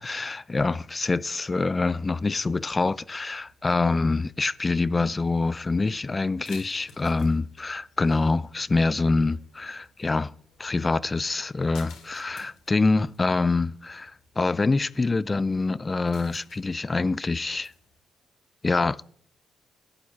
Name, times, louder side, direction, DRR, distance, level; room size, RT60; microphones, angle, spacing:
voice 1, 0.0-10.3 10.6-17.7 18.6-19.0, left 3 dB, 25° left, 0.3 m, -25 dB
sound 1, 3.3-18.0, left 5 dB, 85° left, 2.7 m, -56 dB
12.5 x 8.3 x 4.4 m
cardioid pair, 90°, 0 cm